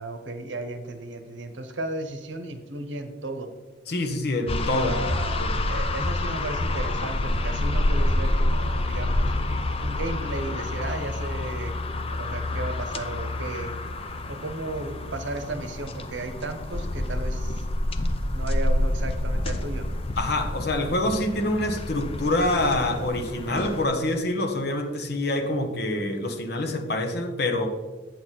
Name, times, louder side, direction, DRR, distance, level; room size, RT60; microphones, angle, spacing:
voice 1, 0.0-3.5 4.8-9.3 9.8-11.7 12.1-13.7 14.3-17.6 18.3-19.9, right 2 dB, 75° right, 7 dB, 0.9 m, -34 dB
voice 2, 3.9-5.1 5.4-5.6 20.2-27.7, left 1 dB, 55° left, 5 dB, 0.9 m, -26 dB
sound 1, 4.5-23.9, left 1 dB, 30° left, 0.5 m, -28 dB
8.4 x 6.1 x 4.1 m, 1.3 s
head